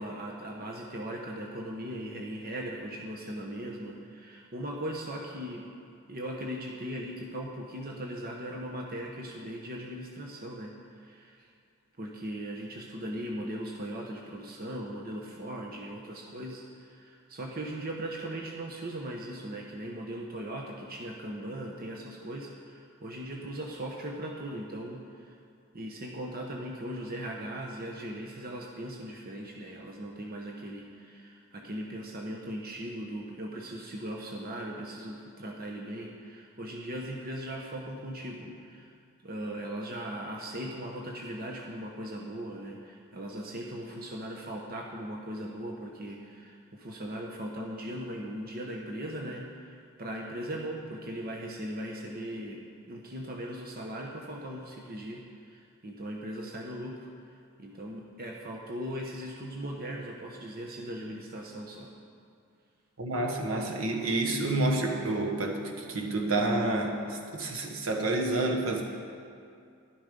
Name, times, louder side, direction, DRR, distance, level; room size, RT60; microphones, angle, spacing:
voice 1, 0.0-5.7 6.1-10.7 11.0-11.5 12.0-25.4 25.7-38.9 39.2-52.6 52.9-57.1 57.6-61.9, right 1 dB, 40° right, -1 dB, 1.0 m, -39 dB
voice 2, 63.0-68.8, right 2 dB, 75° right, 1 dB, 1.6 m, -29 dB
12.0 x 12.0 x 5.3 m, 2.4 s
head